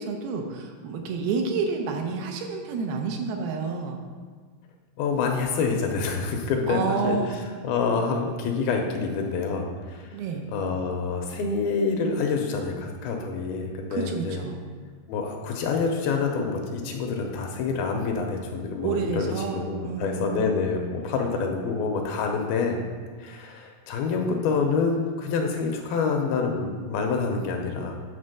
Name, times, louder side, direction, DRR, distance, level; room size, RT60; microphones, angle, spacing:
voice 1, 0.0-4.0 6.7-7.4 10.1-10.5 13.9-14.6 18.8-20.3, right 5 dB, 80° right, 3 dB, 2.6 m, -29 dB
voice 2, 5.0-7.2 7.6-10.2 10.5-14.4 15.1-22.8 23.2-28.0, left 4 dB, 80° left, 2 dB, 2.4 m, -27 dB
8.8 x 4.0 x 6.6 m, 1.5 s
omnidirectional pair, 4.6 m